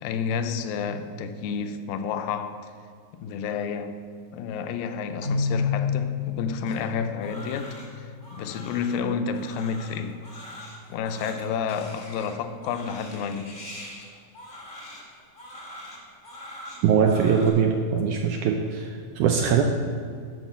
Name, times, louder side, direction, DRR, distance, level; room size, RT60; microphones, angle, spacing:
voice 1, 0.0-2.7 3.2-4.0 4.3-10.2 10.9-13.6, left 6 dB, 80° left, 2.3 m, -30 dB
Keyboard (musical), 5.2-8.1, left 5 dB, 65° right, 2.4 m, -29 dB
Crying sobbing, 6.7-17.5, left 1 dB, 55° left, 0.5 m, -44 dB
voice 2, 16.8-19.6, right 7 dB, 80° right, 1.8 m, -22 dB
11.5 x 4.7 x 7.1 m
omnidirectional pair, 4.1 m